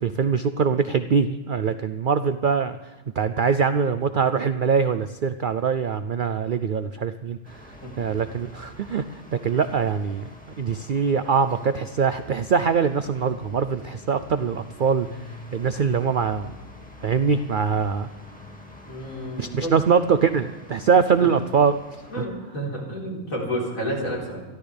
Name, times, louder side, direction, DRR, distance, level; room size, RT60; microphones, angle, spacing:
voice 1, 0.0-2.8 3.2-7.6 8.0-9.0 9.4-10.3 10.6-15.1 15.5-16.5 17.0-18.1 19.4-21.8 22.2-22.3, right 6 dB, 65° right, 11 dB, 0.5 m, -23 dB
sound 1, 7.4-22.3, left 1 dB, 5° left, 1.9 m, -45 dB
voice 2, 18.9-19.7 21.2-21.3 22.1-24.4, equal, 75° left, -4 dB, 4.6 m, -30 dB
27.0 x 12.0 x 3.4 m, 1.2 s
omnidirectional pair, 1.5 m